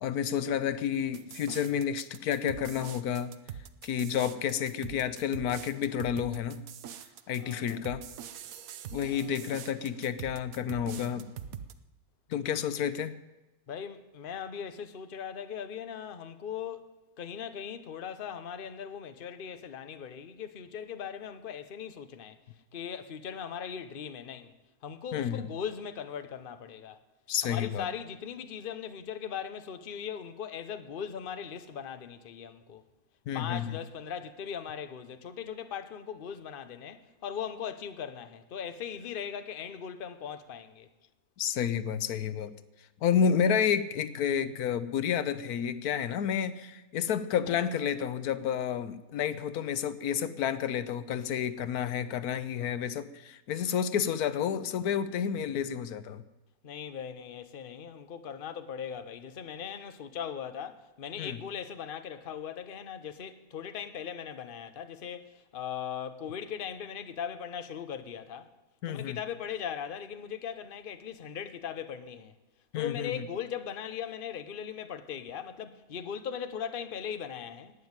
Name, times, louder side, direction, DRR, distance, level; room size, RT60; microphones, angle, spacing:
voice 1, 0.0-3.4 3.8-6.6 7.3-8.0 8.9-11.3 12.3-13.1 25.1-25.5 27.3-27.9 33.3-33.8 41.4-42.5 43.0-56.2 61.2-61.4 68.8-69.2 72.7-73.3, left 8 dB, 85° left, 1.3 m, -30 dB
sound 1, 1.1-11.7, right 8 dB, 70° right, 1.2 m, -44 dB
voice 2, 7.4-7.8 9.0-9.5 13.7-22.4 22.7-24.5 24.8-27.0 27.4-32.8 33.3-40.9 56.6-68.5 68.9-72.3 72.7-77.7, left 8 dB, 45° left, 0.9 m, -39 dB
11.5 x 9.2 x 9.6 m
omnidirectional pair, 1.6 m